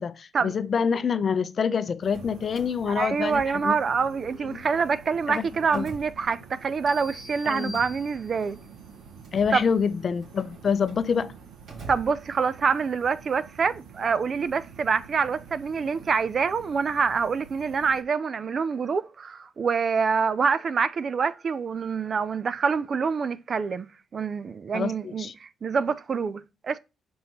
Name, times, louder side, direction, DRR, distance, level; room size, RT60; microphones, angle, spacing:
voice 1, 0.0-3.8 4.4-4.6 5.3-5.4 5.7-5.9 7.4-7.8 9.3-11.3 24.7-25.3, left 6 dB, 45° left, 0.6 m, -26 dB
Drawer open or close, 1.9-4.1 4.4-6.8 7.4-12.7, right 2 dB, 65° right, 3.5 m, -48 dB
sound 1, 2.0-18.0, right 6 dB, 85° right, 1.2 m, -48 dB
voice 2, 2.9-8.6 9.5-9.6 11.9-23.9 24.1-26.8, right 5 dB, 45° right, 0.5 m, -26 dB
sound 2, 6.9-8.7, left 2 dB, 15° left, 1.2 m, -44 dB
5.8 x 5.5 x 4.2 m
cardioid pair, 90°, 0 cm